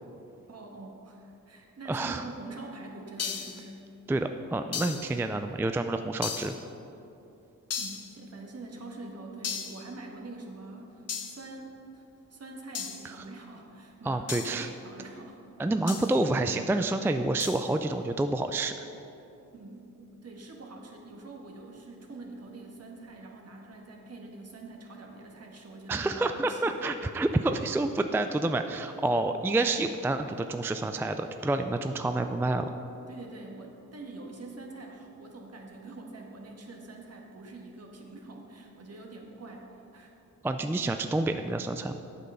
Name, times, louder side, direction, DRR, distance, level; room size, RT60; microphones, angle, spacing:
voice 1, 0.5-3.9 7.8-12.0 12.3-15.4 19.5-26.9 33.1-40.1, right 2 dB, 50° right, 1 dB, 1.5 m, -45 dB
voice 2, 1.9-2.2 4.1-6.5 13.0-13.1 14.0-14.7 15.6-18.9 25.9-32.7 40.4-42.1, right 2 dB, 10° right, 7 dB, 0.3 m, -28 dB
sound 1, 3.2-3.7 4.7-5.1 6.2-6.6 7.7-8.1 9.4-9.8 11.1-11.4 12.8-13.1 14.3-14.6 15.9-16.2 17.4-17.7, left 6 dB, 50° left, 0.8 m, -35 dB
8.2 x 6.7 x 5.5 m, 2.8 s
cardioid pair, 70°, 31 cm